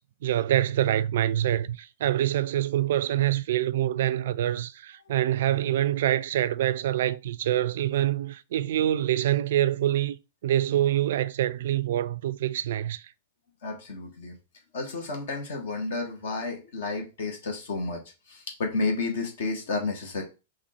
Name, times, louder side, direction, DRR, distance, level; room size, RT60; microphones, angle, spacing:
voice 1, 0.2-10.2 10.4-13.0, right 12 dB, 65° right, 0.3 m, -25 dB
voice 2, 13.6-14.4 14.7-18.0 18.3-20.2, left 3 dB, 65° left, 1.3 m, -31 dB
4.1 x 2.6 x 4.1 m
hypercardioid pair, 110°, 0 cm